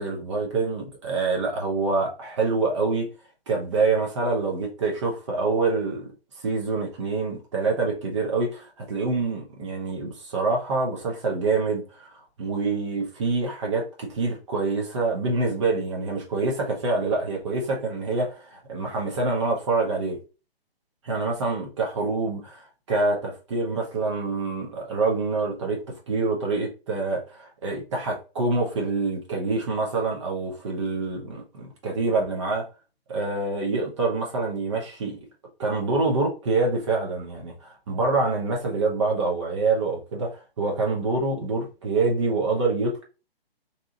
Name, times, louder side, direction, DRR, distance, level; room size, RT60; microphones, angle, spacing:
voice 1, 0.0-3.1 3.5-6.1 6.4-20.2 21.0-32.7 33.1-35.2 35.6-43.0, right 3 dB, 30° right, 0.6 m, -26 dB
2.8 x 2.2 x 2.7 m
figure-of-eight pair, 130°, 31 cm